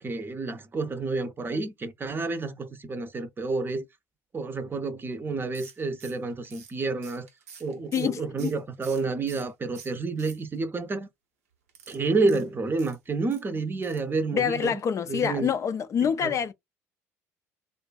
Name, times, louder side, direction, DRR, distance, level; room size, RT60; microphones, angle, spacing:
voice 1, 0.0-3.8 4.3-7.3 7.6-11.1 11.9-14.8 15.1-15.5 16.2-16.3, right 3 dB, 30° right, 0.6 m, -29 dB
sound 1, 5.6-9.5 9.8-10.8 11.7-13.4 13.8-14.1 14.4-14.5 14.8-14.9, right 7 dB, 90° right, 0.6 m, -49 dB
voice 2, 7.9-8.5 14.3-16.5, left 7 dB, 40° left, 0.4 m, -26 dB
2.5 x 2.3 x 2.3 m
hypercardioid pair, 60°, 7 cm